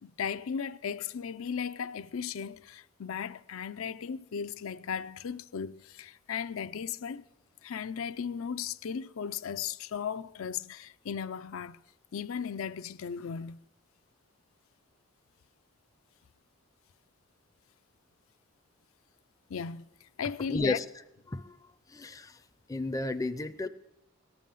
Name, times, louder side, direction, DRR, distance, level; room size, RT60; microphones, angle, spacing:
voice 1, 0.0-7.2 7.6-11.8 12.1-13.6 19.5-20.8, left 7 dB, 80° left, 0.5 m, -36 dB
voice 2, 20.5-20.8 21.3-21.6 21.9-22.4 22.7-23.7, left 2 dB, 15° left, 0.4 m, -32 dB
18.0 x 7.0 x 9.1 m
head